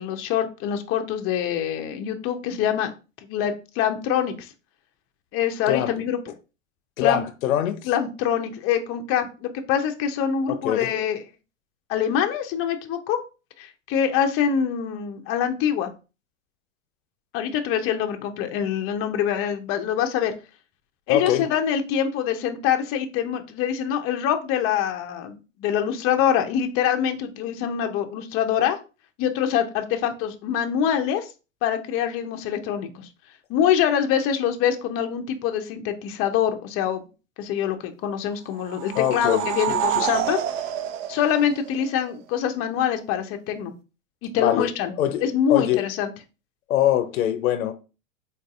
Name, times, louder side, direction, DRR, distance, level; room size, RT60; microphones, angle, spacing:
voice 1, 0.0-2.9 3.3-4.5 5.3-6.2 7.0-7.2 7.8-11.2 11.9-13.2 13.6-15.9 17.3-20.3 21.1-28.8 29.2-31.3 31.6-33.1 33.5-37.0 37.4-40.4 41.1-43.7 44.2-44.9 45.2-46.1, left 9 dB, 35° left, 0.5 m, -24 dB
voice 2, 7.0-7.8 10.5-10.9 21.1-21.5 38.9-39.4 39.7-40.1 44.4-44.7 45.0-45.2 45.5-45.9 46.7-47.7, left 11 dB, 85° left, 0.5 m, -23 dB
sound 1, 38.5-42.1, right 10 dB, 70° right, 0.5 m, -28 dB
4.0 x 2.6 x 2.3 m
hypercardioid pair, 105°, 40 cm